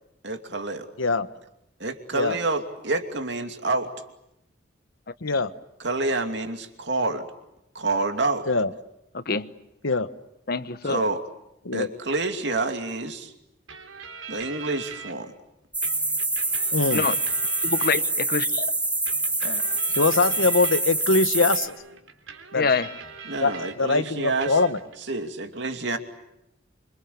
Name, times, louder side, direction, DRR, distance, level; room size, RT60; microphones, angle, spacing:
voice 1, 0.2-0.9 1.8-3.9 5.8-7.3 7.7-8.5 10.8-11.2 11.7-13.3 14.3-15.3 23.3-24.5 25.1-26.0, right 3 dB, 65° right, 2.8 m, -28 dB
voice 2, 1.0-1.3 2.1-2.4 5.2-5.5 8.5-8.7 9.8-10.1 11.6-11.9 16.7-17.1 19.9-21.7 22.5-22.7 23.4-24.8, left 3 dB, 90° left, 1.3 m, -23 dB
voice 3, 9.1-9.5 10.5-11.0 16.9-17.2 17.6-18.7 19.4-19.7 22.5-22.9, left 4 dB, 50° left, 1.0 m, -26 dB
sound 1, 13.7-15.1 15.8-18.4 19.1-23.7 24.0-25.0, right 6 dB, 90° right, 3.7 m, -41 dB
sound 2, 15.7-21.7, right 2 dB, 5° right, 1.4 m, -25 dB
27.0 x 25.5 x 8.5 m
head